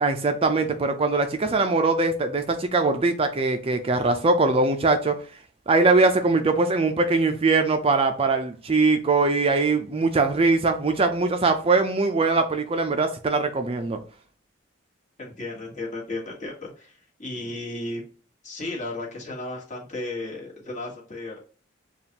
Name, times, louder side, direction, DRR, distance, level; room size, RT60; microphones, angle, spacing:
voice 1, 0.0-5.1 5.7-14.0, right 3 dB, 30° right, 0.4 m, -22 dB
voice 2, 15.2-18.0 18.4-21.4, left 2 dB, 40° left, 1.4 m, -34 dB
6.9 x 2.4 x 2.8 m
head